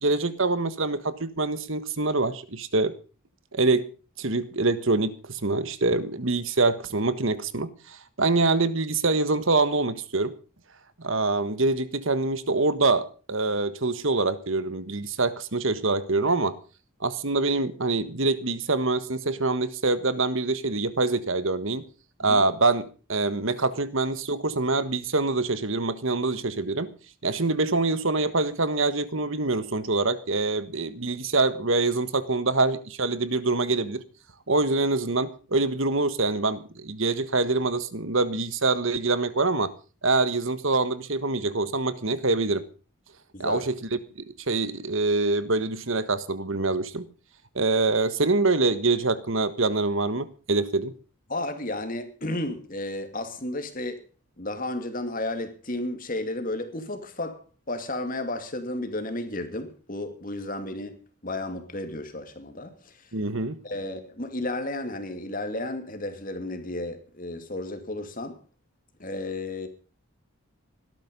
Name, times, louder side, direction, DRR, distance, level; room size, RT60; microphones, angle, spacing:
voice 1, 0.0-2.9 3.5-3.9 4.2-10.3 11.0-16.6 17.0-21.8 22.2-22.8 23.1-26.9 27.2-34.0 34.5-39.7 40.0-42.6 43.4-43.8 44.2-47.1 47.5-50.9 63.1-63.6, right 3 dB, 60° right, 1.5 m, -25 dB
voice 2, 43.3-43.7 51.3-54.0 54.4-63.1 63.6-68.4 69.0-69.7, left 2 dB, 40° left, 2.6 m, -33 dB
18.5 x 13.0 x 5.4 m
head